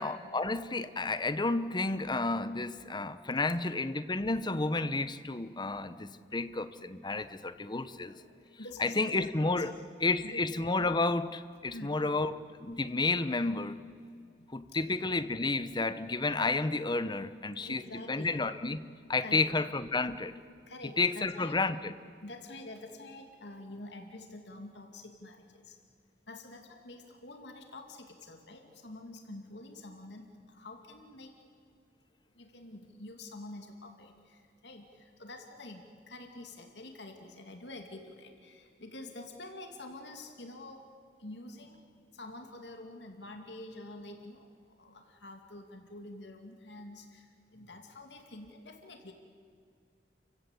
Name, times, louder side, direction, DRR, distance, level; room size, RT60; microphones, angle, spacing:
voice 1, 0.0-8.1 8.8-9.7 10.0-12.3 12.6-13.7 14.5-17.8 18.1-18.8 19.1-20.4 21.0-21.9, left 3 dB, 25° left, 12 dB, 0.9 m, -31 dB
voice 2, 7.2-9.8 10.2-10.4 11.7-12.0 14.2-14.5 17.6-18.4 19.2-19.4 20.7-21.6 22.2-25.8 26.3-31.3 32.4-40.8 41.2-41.8 42.1-44.5 44.8-47.3 47.5-49.1, left 2 dB, 75° left, 4 dB, 2.6 m, -47 dB
29.5 x 16.0 x 8.4 m, 2.1 s
head